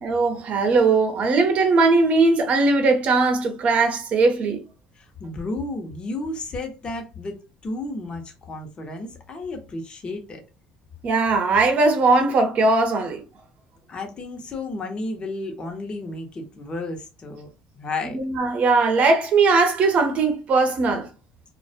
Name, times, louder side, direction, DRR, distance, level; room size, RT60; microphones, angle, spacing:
voice 1, 0.0-4.6 11.0-13.2 18.1-21.1, right 3 dB, 50° right, 0.7 m, -19 dB
voice 2, 5.0-10.4 13.9-17.5 17.7-18.2, left 2 dB, 35° left, 0.7 m, -32 dB
2.2 x 2.1 x 2.7 m
supercardioid pair, 85°, 3 cm